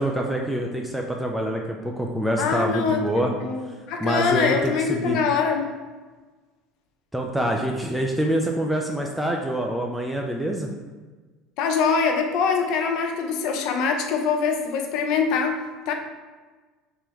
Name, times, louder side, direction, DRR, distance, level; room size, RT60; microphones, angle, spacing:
voice 1, 0.0-3.3 4.0-4.5 4.9-5.2 7.1-10.7, right 1 dB, 5° right, 1 dB, 0.4 m, -25 dB
voice 2, 2.4-3.0 3.4-5.7 11.6-15.9, left 5 dB, 65° left, 4 dB, 0.5 m, -23 dB
3.2 x 3.0 x 3.5 m, 1.3 s
supercardioid pair, 105°, 0 cm